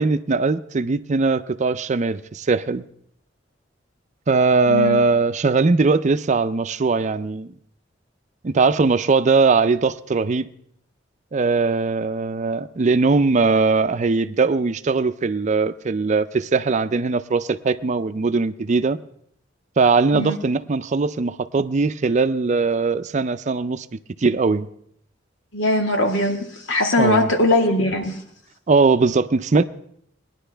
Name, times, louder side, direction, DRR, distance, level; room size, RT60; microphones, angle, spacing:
voice 1, 0.0-2.9 4.3-7.5 8.4-10.5 11.3-19.0 19.8-23.9 24.2-24.7 27.0-27.3 28.7-29.6, right 4 dB, 40° right, 0.5 m, -20 dB
voice 2, 4.7-5.0 20.1-20.4 25.5-28.2, left 1 dB, 85° left, 1.8 m, -20 dB
20.0 x 10.5 x 3.4 m
head